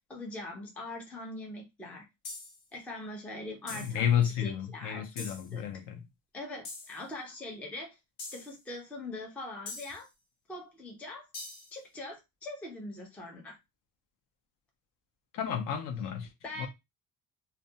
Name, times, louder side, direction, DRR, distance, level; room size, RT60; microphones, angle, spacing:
voice 1, 0.1-2.0 2.7-5.6 6.3-8.0 8.3-10.1 10.5-11.3 11.7-13.6 16.4-16.7, left 2 dB, 5° left, 0.3 m, -42 dB
sound 1, 2.2-2.6 3.7-4.0 5.2-5.5 6.6-7.0 8.2-8.5 9.7-10.1 11.3-11.8, left 3 dB, 80° left, 1.2 m, -43 dB
voice 2, 3.7-6.0 15.3-16.3 16.6-16.7, left 9 dB, 60° left, 0.5 m, -31 dB
2.3 x 2.2 x 2.6 m
cardioid pair, 175°, 38 cm